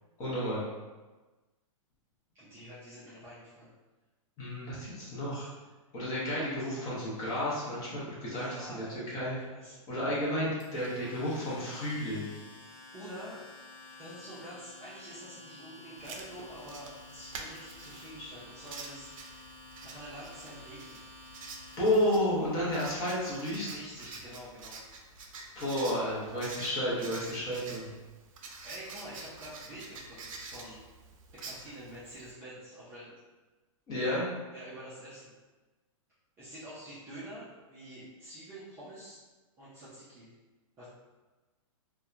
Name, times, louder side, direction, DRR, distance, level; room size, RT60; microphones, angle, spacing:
voice 1, 0.2-0.6 4.4-5.5 5.9-9.4 9.9-12.3 21.8-23.7 25.6-27.9 33.9-34.3, left 1 dB, 20° left, -7 dB, 0.7 m, -31 dB
voice 2, 2.3-3.7 8.3-9.8 12.9-13.4 14.0-19.1 19.8-21.0 23.6-24.8 28.4-30.8 31.3-33.1 34.5-35.3 36.4-39.2 39.6-40.3 40.8-40.9, equal, 15° right, -11 dB, 0.4 m, -47 dB
Domestic sounds home sounds, 10.6-22.2, left 2 dB, 65° left, 1.0 m, -51 dB
Writing, 16.0-32.3, right 3 dB, 75° right, 0.5 m, -47 dB
2.7 x 2.1 x 2.3 m, 1.2 s
hypercardioid pair, 160°, 18 cm